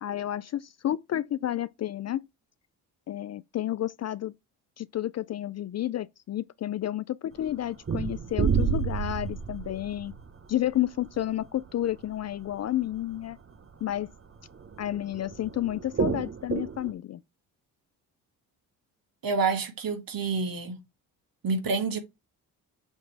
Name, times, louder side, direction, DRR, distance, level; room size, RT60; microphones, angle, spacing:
voice 1, 0.0-2.3 3.1-4.3 4.8-10.1 10.5-13.4 13.8-14.1 14.8-17.2, left 12 dB, 40° left, 0.4 m, -31 dB
sound 1, 7.4-7.5 7.9-11.8 12.1-12.2 12.5-12.6 12.9-13.2 13.6-13.7 13.9-16.9, right 6 dB, 30° right, 1.0 m, -30 dB
voice 2, 19.2-20.8 21.4-22.0, right 4 dB, 50° right, 1.9 m, -28 dB
7.3 x 3.2 x 4.6 m
supercardioid pair, 55°, 42 cm